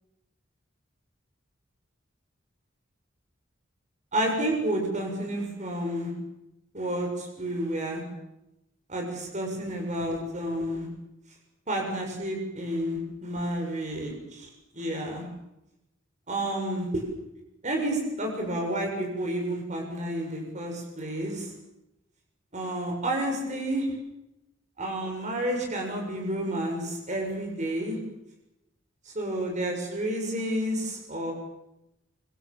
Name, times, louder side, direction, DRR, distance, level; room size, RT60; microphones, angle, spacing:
voice 1, 4.1-6.1 6.7-8.1 8.9-10.9 11.7-14.5 14.7-15.3 16.3-16.9 17.6-21.5 22.5-23.9 24.8-28.0 29.1-31.3, right 1 dB, 40° right, 1 dB, 7.4 m, -30 dB
26.0 x 25.5 x 7.5 m, 0.89 s
head